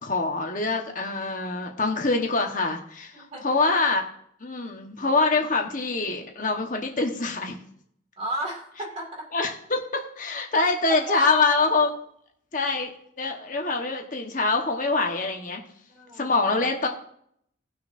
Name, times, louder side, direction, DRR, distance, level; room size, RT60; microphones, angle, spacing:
voice 1, 0.0-4.0 4.4-7.6 9.3-11.9 12.5-12.9 13.2-15.6 16.2-16.9, left 3 dB, 40° left, 2 dB, 1.2 m, -25 dB
voice 2, 3.1-3.6 8.2-9.3 10.6-10.7 11.0-11.7 15.9-16.3, right 1 dB, 30° right, 0 dB, 2.3 m, -34 dB
18.5 x 6.3 x 2.6 m, 0.67 s
head